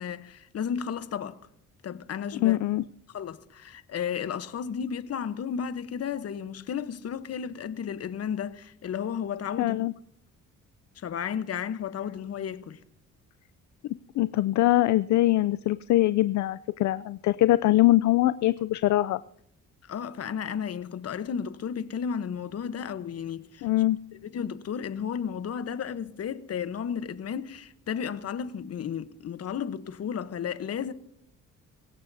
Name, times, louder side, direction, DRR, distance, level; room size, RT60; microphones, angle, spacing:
voice 1, 0.0-1.4 1.8-2.6 3.1-9.9 11.0-12.8 19.8-23.7 24.2-30.9, left 7 dB, 55° left, 1.0 m, -33 dB
voice 2, 2.4-2.8 9.6-9.9 14.2-19.2 23.6-24.0, left 16 dB, 70° left, 0.5 m, -23 dB
24.5 x 16.0 x 2.7 m
cardioid pair, 90°, 30 cm